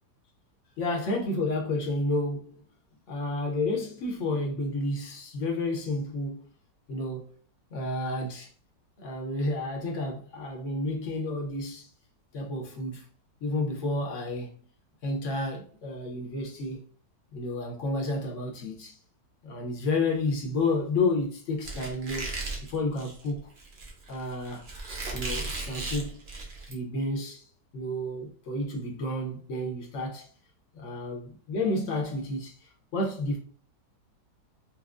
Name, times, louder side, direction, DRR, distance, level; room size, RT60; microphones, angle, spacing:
voice 1, 0.8-2.6 3.1-6.5 6.9-7.3 7.7-8.5 9.0-11.9 12.3-13.1 13.4-14.5 15.0-16.9 17.3-19.0 19.4-22.3 22.7-23.5 24.1-24.7 25.1-26.2 26.7-27.5 27.7-30.3 30.7-33.4, left 2 dB, 55° left, 0.9 m, -31 dB
Squeak, 21.6-26.7, right 3 dB, 60° right, 0.5 m, -36 dB
4.3 x 2.0 x 2.4 m
omnidirectional pair, 1.9 m